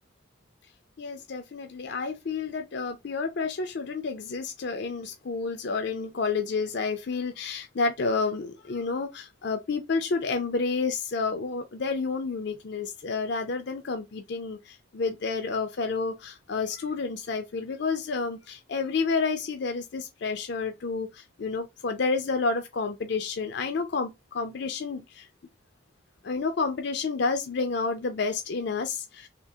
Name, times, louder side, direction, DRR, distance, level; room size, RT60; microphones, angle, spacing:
voice 1, 1.0-14.6 14.9-21.1 21.4-25.2 26.2-29.3, left 4 dB, 60° left, 0.5 m, -30 dB
3.6 x 2.5 x 2.6 m
head